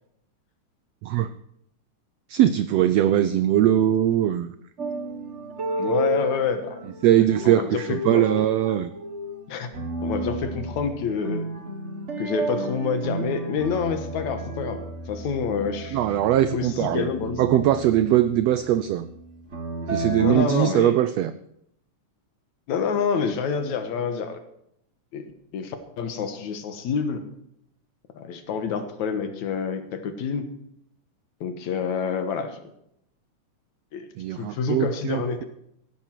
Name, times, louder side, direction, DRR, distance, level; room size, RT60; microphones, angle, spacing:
voice 1, 2.3-4.5 7.0-8.9 15.9-17.1 17.4-19.1 19.9-21.3 34.2-35.2, right 12 dB, 85° right, 13 dB, 1.4 m, -21 dB
sound 1, 4.8-20.3, right 2 dB, 35° right, 1.1 m, -33 dB
voice 2, 5.8-6.8 7.4-8.2 9.5-9.7 10.0-11.5 12.2-16.0 16.5-17.6 20.2-20.9 22.7-24.4 25.1-27.2 28.2-30.5 31.4-32.6 33.9-34.1 34.4-35.4, left 6 dB, 70° left, 8 dB, 2.6 m, -27 dB
16.0 x 11.5 x 4.6 m, 0.74 s
omnidirectional pair, 3.6 m